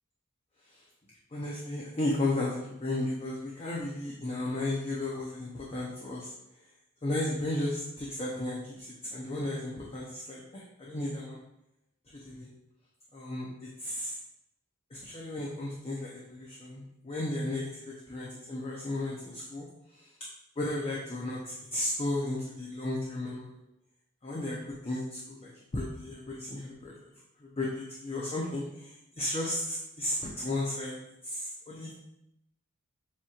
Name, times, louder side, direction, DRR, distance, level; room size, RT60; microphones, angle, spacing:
voice 1, 1.3-6.3 7.0-11.4 12.2-12.5 13.1-14.2 14.9-19.7 19.9-20.1 20.6-23.6 24.2-26.9 27.4-31.0 31.2-31.9, left 1 dB, 30° left, -4 dB, 0.6 m, -34 dB
7.2 x 3.0 x 2.4 m, 0.84 s
head